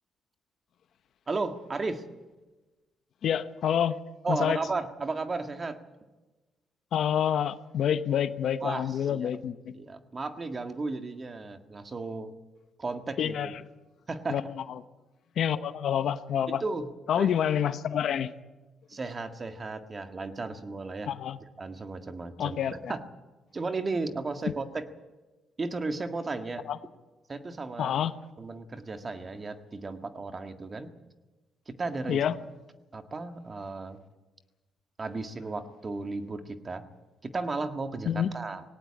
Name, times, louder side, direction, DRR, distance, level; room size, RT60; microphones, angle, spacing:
voice 1, 1.3-2.0 4.2-5.8 8.6-9.3 9.7-12.3 12.8-13.5 14.1-14.4 16.5-16.9 17.2-17.3 18.9-21.1 21.6-22.6 22.9-23.0 23.5-24.9 25.6-26.6 27.3-28.0 28.4-30.9 31.7-32.2 32.9-34.0 35.0-36.9 37.2-38.6, right 3 dB, 30° right, 7 dB, 1.7 m, -34 dB
voice 2, 3.2-4.0 4.3-4.6 6.9-9.7 13.2-13.5 14.3-14.4 15.4-16.6 17.1-18.3 21.1-21.4 22.4-22.9 26.7-26.8 27.8-28.1 32.1-32.4 38.1-38.3, left 9 dB, 70° left, 12 dB, 1.0 m, -27 dB
19.0 x 18.0 x 8.7 m, 1.2 s
cardioid pair, 90°, 0 cm